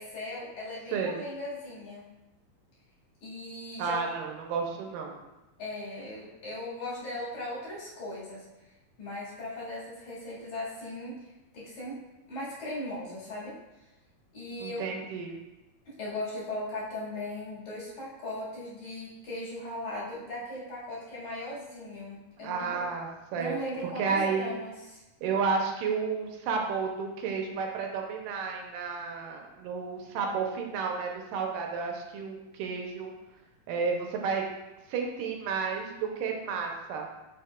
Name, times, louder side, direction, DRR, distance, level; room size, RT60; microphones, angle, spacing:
voice 1, 0.0-2.1 3.2-4.0 5.6-8.4 9.0-11.2 11.5-12.0 12.3-13.5 14.3-15.1 15.9-22.9 23.3-25.0, left 1 dB, 60° left, -8 dB, 3.2 m, -38 dB
voice 2, 0.9-1.2 3.8-5.2 14.6-15.3 22.4-23.6 24.0-24.5 25.2-33.1 33.7-34.5 34.9-37.2, right 5 dB, 85° right, 2 dB, 2.3 m, -31 dB
6.5 x 6.5 x 2.3 m, 0.99 s
omnidirectional pair, 3.9 m